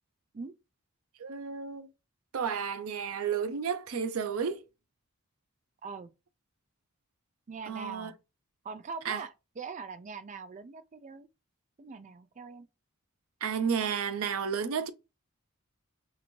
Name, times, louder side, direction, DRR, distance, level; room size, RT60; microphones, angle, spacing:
voice 1, 1.2-1.9 2.3-4.7 7.7-8.1 9.0-9.3 13.4-14.9, right 6 dB, 85° right, 0.5 m, -32 dB
voice 2, 7.5-8.2 8.6-11.3 11.8-12.7, right 5 dB, 35° right, 0.4 m, -42 dB
2.9 x 2.6 x 4.2 m
head